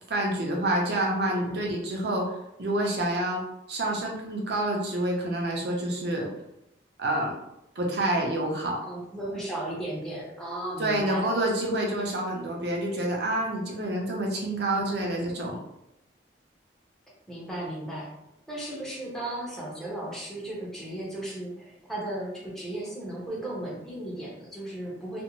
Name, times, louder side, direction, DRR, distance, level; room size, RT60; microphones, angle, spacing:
voice 1, 0.1-3.4 3.7-6.3 7.0-7.4 7.8-8.8 10.8-15.6, right 1 dB, 65° right, -1 dB, 0.6 m, -28 dB
voice 2, 1.2-1.6 8.8-11.4 14.7-15.3 17.3-18.1 18.5-25.2, right 1 dB, 5° left, -6 dB, 0.7 m, -35 dB
2.5 x 2.0 x 2.9 m, 0.84 s
head